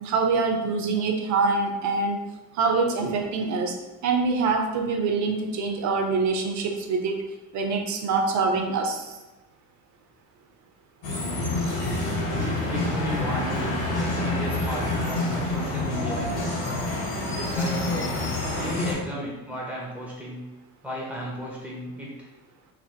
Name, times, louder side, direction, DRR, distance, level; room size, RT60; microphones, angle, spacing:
voice 1, 0.0-2.2 2.5-3.7 4.0-7.2 7.5-9.1, right 4 dB, 40° right, 4 dB, 0.6 m, -25 dB
sound 1, 11.0-18.9, left 2 dB, 60° left, 1.2 m, -27 dB
voice 2, 12.3-16.6 17.5-18.2 18.5-20.4 20.8-22.3, right 1 dB, 5° right, -5 dB, 1.0 m, -34 dB
3.3 x 2.5 x 2.2 m, 1.1 s
hypercardioid pair, 60°, 45 cm